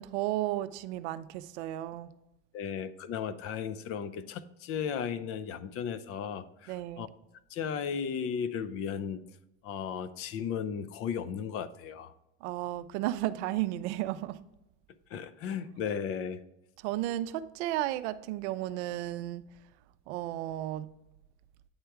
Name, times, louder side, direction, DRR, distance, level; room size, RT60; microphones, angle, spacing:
voice 1, 0.0-2.1 6.7-7.1 12.4-14.4 16.8-19.4 20.1-20.9, right 14 dB, 75° right, 13 dB, 0.5 m, -33 dB
voice 2, 2.5-7.1 7.5-9.2 9.6-12.1 15.1-16.4, left 7 dB, 45° left, 14 dB, 0.5 m, -35 dB
8.8 x 3.4 x 4.6 m, 0.89 s
supercardioid pair, 110°, 34 cm